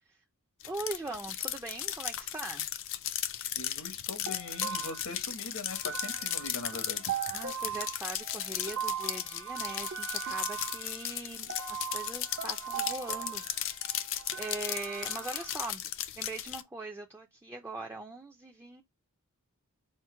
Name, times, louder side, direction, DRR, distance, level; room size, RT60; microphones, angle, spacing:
sound 1, 0.6-16.6, left 11 dB, 60° left, 0.4 m, -36 dB
voice 1, 0.6-2.7 7.3-13.5 13.9-15.9 16.2-18.8, right 2 dB, 10° right, 0.4 m, -41 dB
voice 2, 3.5-7.2, left 3 dB, 85° left, 1.1 m, -41 dB
sound 2, 4.3-15.5, right 9 dB, 60° right, 0.7 m, -39 dB
4.4 x 2.1 x 4.3 m
head